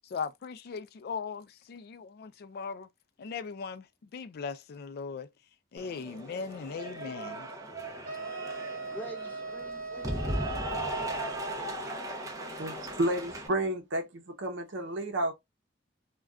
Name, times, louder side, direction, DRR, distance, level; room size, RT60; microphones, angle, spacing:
voice 1, 0.0-2.9 3.2-5.3 5.7-7.5, left 5 dB, 55° left, 0.3 m, -39 dB
Cheering / Applause, 5.8-13.5, right 1 dB, 20° right, 0.6 m, -37 dB
sound 1, 8.0-11.7, right 3 dB, 45° right, 0.9 m, -40 dB
voice 2, 8.9-12.2, right 2 dB, 10° left, 1.0 m, -46 dB
voice 3, 12.6-15.3, right 1 dB, 75° right, 0.7 m, -31 dB
2.3 x 2.2 x 3.5 m
head